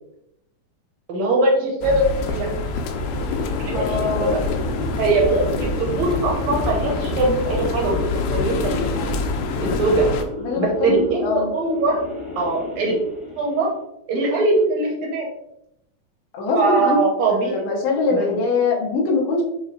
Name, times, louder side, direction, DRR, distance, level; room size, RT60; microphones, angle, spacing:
voice 1, 1.1-2.5 3.6-4.4 5.0-8.0 8.3-9.2 9.6-10.1 10.6-12.0 12.4-13.0 13.4-13.8 14.1-15.3 16.5-17.6 18.1-18.4, right 2 dB, 70° right, -2 dB, 1.8 m, -21 dB
sound 1, 1.8-10.2, left 3 dB, 85° left, 2.1 m, -26 dB
sound 2, 2.6-13.8, left 3 dB, 45° left, 1.2 m, -32 dB
voice 2, 3.7-4.4 10.4-11.5 16.3-17.0 17.3-19.4, left 3 dB, 65° left, -2 dB, 1.6 m, -22 dB
5.1 x 3.1 x 2.6 m, 0.83 s
omnidirectional pair, 3.7 m